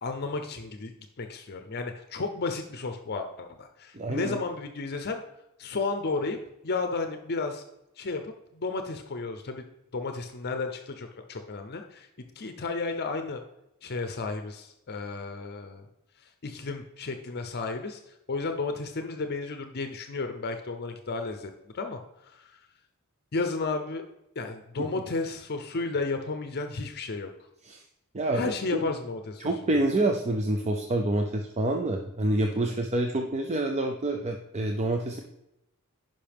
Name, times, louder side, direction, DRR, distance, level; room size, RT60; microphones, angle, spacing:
voice 1, 0.0-5.2 5.6-6.4 6.6-7.6 8.0-9.6 9.9-12.1 12.4-13.4 13.8-15.9 16.4-18.0 18.3-22.0 22.3-22.5 23.3-24.0 24.4-27.3 28.3-29.4 32.5-32.7, left 3 dB, 45° left, 6 dB, 0.6 m, -33 dB
voice 2, 3.9-4.4 24.8-24.9 27.6-27.8 28.1-28.8 29.4-35.2, right 1 dB, 30° right, 3 dB, 0.5 m, -27 dB
10.5 x 5.4 x 3.5 m, 0.87 s
head